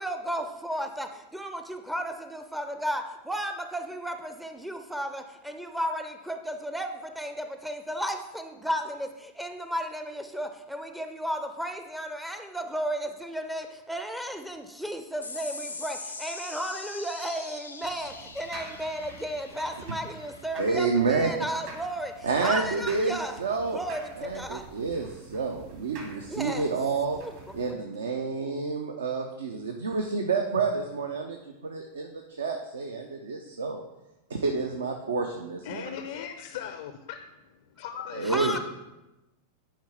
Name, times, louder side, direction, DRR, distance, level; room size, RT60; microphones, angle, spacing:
voice 1, 0.0-23.4 23.7-24.7 26.2-26.7 27.1-27.3 27.7-27.8 38.2-38.6, equal, 5° right, 7 dB, 0.5 m, -34 dB
sound 1, 15.2-22.0, left 3 dB, 85° left, 0.7 m, -43 dB
sound 2, 17.8-27.7, right 4 dB, 50° right, 1.7 m, -48 dB
voice 2, 20.6-21.5 22.2-23.8 24.2-27.2 27.5-33.8 34.3-36.0 38.1-38.6, right 4 dB, 70° right, 4 dB, 0.5 m, -29 dB
voice 3, 35.6-37.2 37.8-38.6, left 9 dB, 55° left, 8 dB, 0.4 m, -37 dB
10.5 x 4.6 x 3.4 m, 1.0 s
figure-of-eight pair, 90°, 0 cm